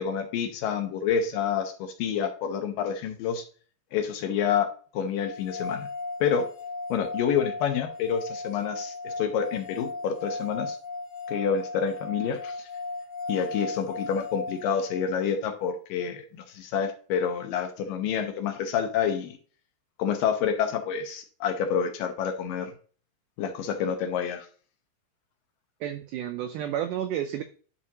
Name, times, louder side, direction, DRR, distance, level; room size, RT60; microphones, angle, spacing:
voice 1, 0.0-3.4 3.9-5.9 6.2-6.5 6.9-10.8 11.3-12.7 13.3-19.4 20.0-22.7 23.4-24.5, left 7 dB, 75° left, 6 dB, 2.2 m, -28 dB
sound 1, 5.2-15.3, left 3 dB, 55° left, 2.2 m, -37 dB
voice 2, 25.8-27.4, right 10 dB, 90° right, 8 dB, 1.8 m, -31 dB
11.0 x 4.8 x 2.8 m, 0.41 s
omnidirectional pair, 4.3 m